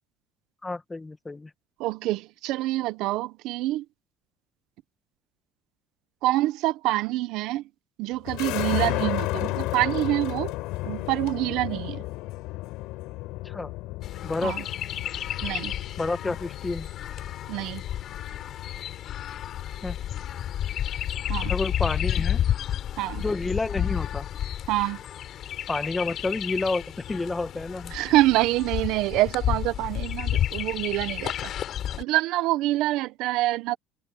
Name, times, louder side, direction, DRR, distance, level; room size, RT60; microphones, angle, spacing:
voice 1, 0.6-1.5 13.4-13.7 14.2-14.6 16.0-16.9 19.8-20.0 21.4-22.4 23.2-24.3 25.7-27.9, left 3 dB, 15° left, 1.8 m, -29 dB
voice 2, 1.8-3.8 6.2-7.6 8.0-10.5 10.8-12.0 14.4-14.6 15.4-15.7 17.5-17.8 21.3-21.5 23.0-23.2 24.7-25.0 27.9-31.3 32.0-33.8, right 17 dB, 70° right, 0.9 m, -26 dB
sound 1, 8.3-21.8, left 20 dB, 75° left, 5.0 m, -34 dB
Chirp tweet, 14.0-32.0, left 10 dB, 50° left, 7.5 m, -31 dB
cardioid pair, 120°, 0 cm